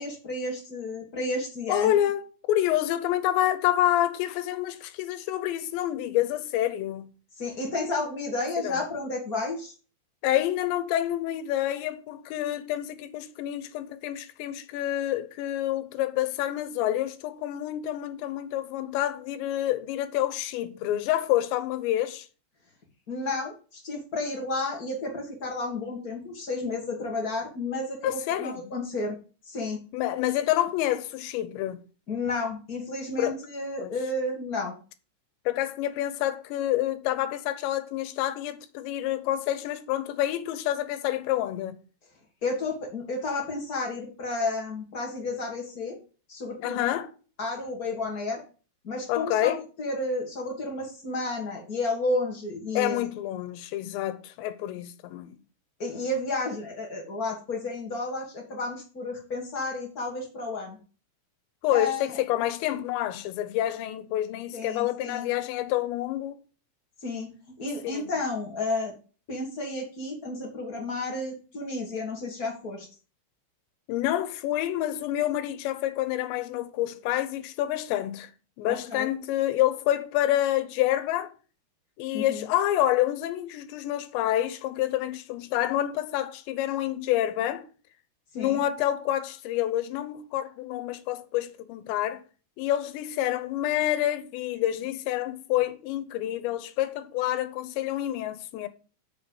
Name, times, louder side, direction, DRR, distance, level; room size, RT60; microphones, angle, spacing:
voice 1, 0.0-1.9 7.4-9.7 23.1-29.1 29.5-29.8 32.1-34.7 42.4-46.0 46.3-47.0 47.4-48.4 48.8-49.5 49.8-53.0 55.8-60.8 61.7-62.2 64.5-65.3 67.0-67.3 67.6-68.9 69.3-72.9 78.7-79.1 82.1-82.5 88.4-88.6, left 2 dB, 70° left, 0.8 m, -32 dB
voice 2, 1.7-7.1 8.4-8.8 10.2-22.3 28.0-28.7 29.9-31.8 33.2-33.4 33.8-33.9 35.5-41.8 46.6-47.1 49.1-49.6 52.7-55.4 61.6-66.4 67.8-68.1 73.9-78.3 78.6-81.3 82.0-87.7 88.4-92.2 92.6-98.7, left 13 dB, 85° left, 3.1 m, -28 dB
6.9 x 5.3 x 7.2 m
omnidirectional pair, 5.0 m